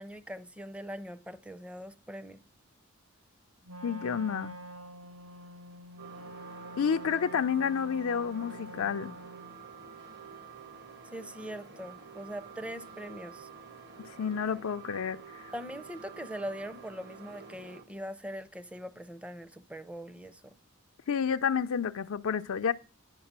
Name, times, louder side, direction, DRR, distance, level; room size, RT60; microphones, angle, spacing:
voice 1, 0.0-2.4 11.1-13.5 15.5-20.6, equal, 5° right, 0.5 m, -42 dB
Wind instrument woodwind instrument, 3.6-9.6, right 1 dB, 70° right, 1.0 m, -46 dB
voice 2, 3.8-4.6 6.8-9.1 14.0-15.5 21.1-22.7, left 7 dB, 75° left, 0.4 m, -30 dB
sound 1, 6.0-17.9, right 6 dB, 50° right, 1.2 m, -49 dB
10.5 x 5.7 x 7.3 m
head